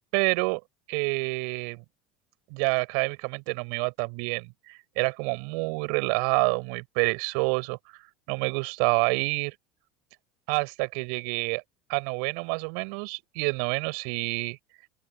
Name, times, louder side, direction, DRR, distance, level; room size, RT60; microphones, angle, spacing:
voice 1, 0.1-0.6 0.9-1.8 2.5-9.5 10.5-11.6 11.9-14.6, right 34 dB, 70° right, 6.2 m, -28 dB
open air
supercardioid pair, 135°, 0 cm